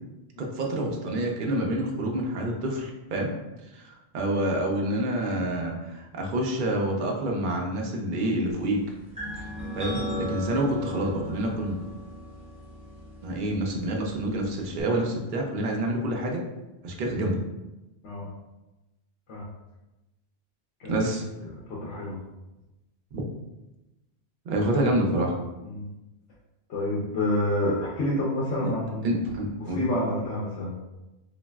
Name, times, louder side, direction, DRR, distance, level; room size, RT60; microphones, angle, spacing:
voice 1, 0.4-3.3 3.7-8.8 9.4-9.5 9.8-11.8 13.2-16.4 16.8-17.4 20.9-21.2 23.1-23.2 24.5-25.3 28.6-28.7 29.0-29.8, right 1 dB, 55° right, 0 dB, 0.6 m, -27 dB
sound 1, 9.2-14.8, left 1 dB, 5° right, 0.6 m, -37 dB
voice 2, 21.5-22.2 24.7-24.8 25.6-25.9 26.7-29.2 29.6-30.8, left 1 dB, 75° left, -6 dB, 0.9 m, -28 dB
3.0 x 2.5 x 2.2 m, 1.0 s
omnidirectional pair, 1.2 m